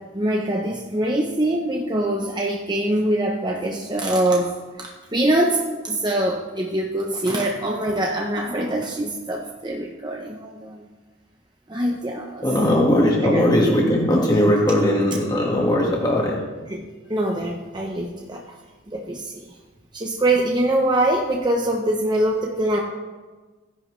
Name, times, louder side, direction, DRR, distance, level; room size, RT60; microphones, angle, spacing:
voice 1, 0.1-10.8 11.7-12.4 13.2-13.4 16.7-16.8 17.1-18.6 18.9-19.5 19.9-22.8, right 1 dB, 25° right, 0 dB, 0.8 m, -23 dB
voice 2, 12.4-16.4, left 1 dB, 20° left, -2 dB, 1.7 m, -19 dB
15.5 x 10.5 x 3.2 m, 1.3 s
head